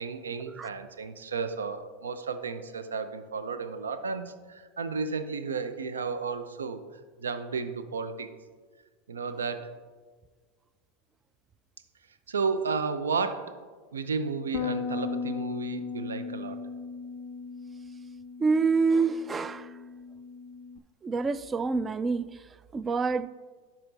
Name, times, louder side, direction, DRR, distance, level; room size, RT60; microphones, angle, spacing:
voice 1, 0.0-6.8 7.2-8.3 9.1-9.7 12.3-13.6 13.9-16.6, right 5 dB, 90° right, 0.6 m, -33 dB
Bass guitar, 14.5-20.8, left 5 dB, 45° left, 0.4 m, -37 dB
voice 2, 18.4-19.7 21.0-22.4 22.7-23.3, right 4 dB, 25° right, 0.4 m, -26 dB
12.0 x 4.5 x 3.9 m
hypercardioid pair, 95°, 0 cm